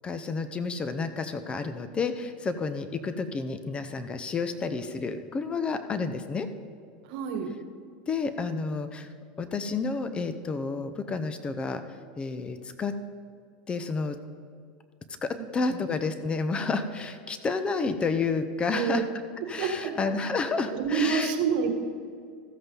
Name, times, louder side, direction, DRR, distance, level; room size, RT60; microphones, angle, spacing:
voice 1, 0.0-6.5 8.1-9.1 9.4-11.8 12.2-12.9 13.7-14.2 15.2-19.0 19.5-21.3, left 4 dB, 25° left, 10 dB, 0.7 m, -30 dB
voice 2, 7.0-7.5 15.3-15.8 18.7-19.0 19.4-19.9 20.7-21.7, right 6 dB, 65° right, 6 dB, 1.4 m, -28 dB
14.0 x 7.9 x 3.9 m, 2.3 s
supercardioid pair, 115°, 5 cm